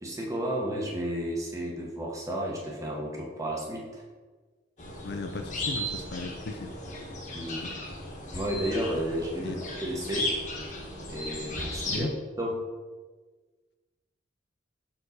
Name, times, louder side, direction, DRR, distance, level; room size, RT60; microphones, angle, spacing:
voice 1, 0.0-4.0 7.3-7.6 8.3-10.3 11.1-12.1 12.4-12.6, equal, 15° right, -2 dB, 1.0 m, -32 dB
sound 1, 4.8-12.0, left 1 dB, 40° left, 1.2 m, -36 dB
voice 2, 5.0-6.7 7.6-7.7 9.4-9.6 11.9-12.1, left 3 dB, 55° left, 6 dB, 0.4 m, -36 dB
6.3 x 4.5 x 4.0 m, 1.3 s
head